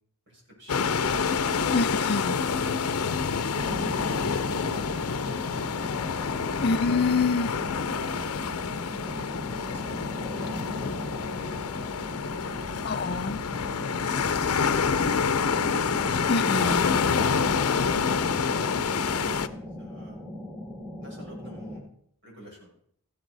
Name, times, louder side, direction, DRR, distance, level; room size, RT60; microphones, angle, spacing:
voice 1, 0.3-3.8 4.2-5.6 6.5-6.7 7.8-10.1 10.4-11.5 12.4-13.2 13.5-15.6 18.5-20.2 21.0-21.8 22.2-22.7, equal, 55° right, 6.1 m, -47 dB
sound 1, 0.7-19.5, left 5 dB, 85° left, 0.7 m, -27 dB
voice 2, 1.7-2.4 6.6-7.5 12.8-13.4 16.3-17.0, left 4 dB, 45° left, 0.6 m, -26 dB
sound 2, 3.6-21.8, left 1 dB, 5° right, 2.7 m, -39 dB
15.0 x 11.0 x 4.1 m
head